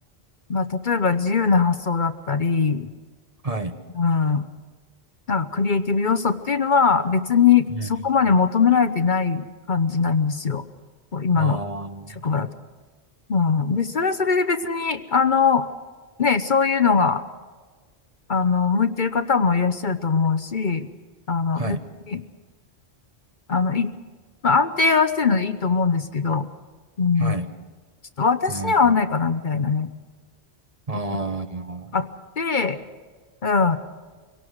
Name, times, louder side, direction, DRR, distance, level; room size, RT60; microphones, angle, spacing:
voice 1, 0.5-2.9 3.9-4.4 5.3-10.6 11.1-11.6 12.2-12.5 13.3-15.7 16.2-17.2 18.3-20.9 21.3-21.8 22.1-22.2 23.5-23.9 24.4-26.5 27.0-27.4 28.2-29.9 31.9-32.1 32.4-32.8 33.4-33.8, left 5 dB, 50° left, 10 dB, 1.0 m, -21 dB
voice 2, 11.4-12.1 21.6-21.8 27.2-27.5 28.5-29.0 30.9-31.9, right 3 dB, 35° right, 7 dB, 1.3 m, -29 dB
24.5 x 18.0 x 6.4 m, 1.5 s
omnidirectional pair, 1.1 m